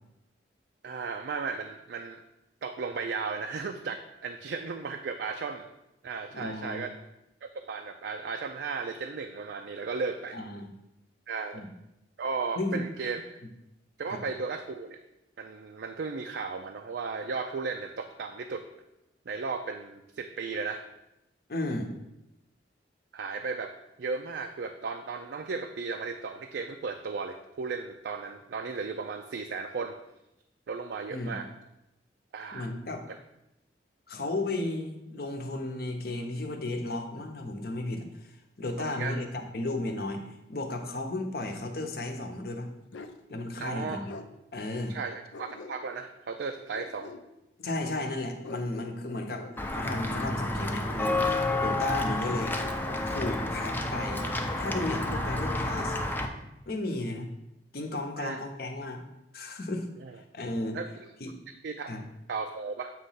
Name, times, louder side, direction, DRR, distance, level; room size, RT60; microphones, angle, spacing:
voice 1, 0.8-2.2 2.6-5.7 6.0-7.0 7.4-10.4 11.3-11.6 12.2-13.2 14.0-15.0 15.4-18.6 19.3-20.8 23.1-23.7 24.0-29.9 30.7-31.5 32.3-32.7 33.1-33.2 38.8-39.2 43.6-44.1 44.9-47.1 58.2-58.4 60.0-60.1 60.7-60.9 61.6-61.9 62.3-62.9, right 4 dB, 65° right, 5 dB, 0.4 m, -35 dB
voice 2, 6.3-6.8 10.3-10.7 11.5-11.7 12.6-12.9 14.1-14.2 21.5-21.9 31.1-31.4 32.5-33.0 34.1-40.2 40.5-42.7 43.3-44.1 44.5-45.0 47.6-49.5 49.7-52.6 53.1-56.0 56.7-57.3 57.7-59.0 59.3-59.9 60.3-60.8 61.2-61.3 61.9-62.0, left 2 dB, 55° left, 4 dB, 0.8 m, -34 dB
Bark, 42.9-43.2 44.1-44.3 45.3-46.1 46.7-47.2 48.4-49.6 50.8-51.7 52.6-53.4, left 3 dB, 85° left, 0.5 m, -45 dB
Walk footsteps / Bell, 49.6-56.3, left 2 dB, 10° left, 0.5 m, -30 dB
7.8 x 3.0 x 5.6 m, 0.90 s
head